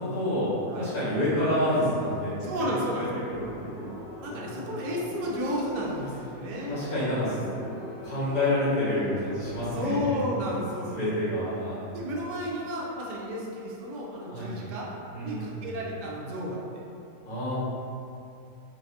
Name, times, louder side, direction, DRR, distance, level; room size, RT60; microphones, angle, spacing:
voice 1, 0.0-3.9 4.3-4.7 6.7-7.4 8.0-10.2 10.5-12.0 14.3-14.5 15.1-15.7 17.2-17.6, left 1 dB, 75° left, -12 dB, 2.0 m, -29 dB
voice 2, 2.4-3.1 4.2-6.8 7.3-7.7 9.7-11.0 11.9-14.9 15.2-16.6, equal, 80° right, -4 dB, 1.2 m, -32 dB
sound 1, 3.3-9.7, equal, 55° left, 0.7 m, -43 dB
4.0 x 2.2 x 2.7 m, 2.6 s
omnidirectional pair, 1.8 m